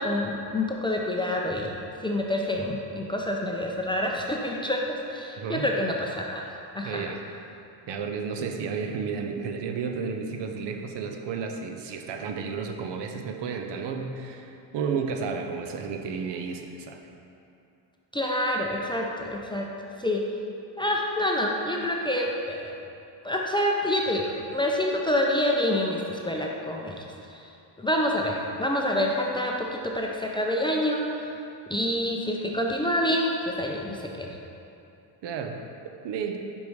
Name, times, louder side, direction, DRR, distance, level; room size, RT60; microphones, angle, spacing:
voice 1, 0.0-6.4 6.7-7.0 18.1-19.7 20.0-20.2 20.8-22.7 23.2-24.2 24.5-27.0 27.3-27.4 27.8-31.2 31.7-34.3, left 1 dB, 10° left, -2 dB, 0.4 m, -27 dB
voice 2, 5.4-5.7 6.8-7.2 7.9-17.0 35.2-35.6 36.0-36.4, right 5 dB, 60° right, 5 dB, 0.7 m, -32 dB
5.4 x 5.1 x 4.7 m, 2.7 s
supercardioid pair, 90°, 48 cm